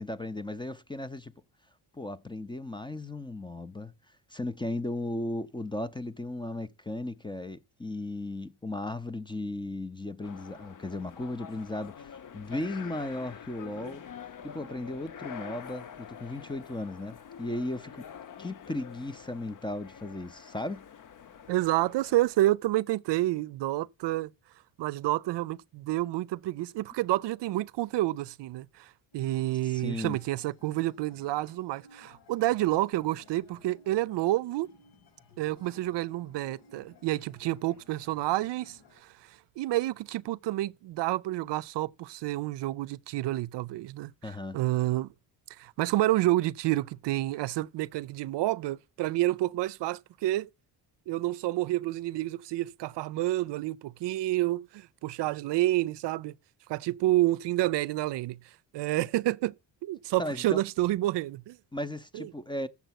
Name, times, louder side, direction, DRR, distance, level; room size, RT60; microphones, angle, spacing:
voice 1, 0.0-1.3 1.9-3.9 4.3-14.0 14.4-18.1 18.4-20.8 29.6-30.2 44.2-44.6 60.2-60.6 61.7-62.7, left 2 dB, 10° left, 0.5 m, -36 dB
sound 1, 10.2-22.4, left 8 dB, 45° left, 0.8 m, -46 dB
voice 2, 21.5-24.3 24.8-34.7 35.4-38.8 39.6-44.1 44.5-45.1 45.6-50.5 51.1-56.3 56.7-58.4 58.7-59.5 59.8-61.6 62.1-62.3, right 16 dB, 70° right, 0.6 m, -29 dB
sound 2, 29.1-39.0, left 3 dB, 65° left, 1.8 m, -58 dB
7.9 x 7.1 x 5.9 m
cardioid pair, 105°, 44 cm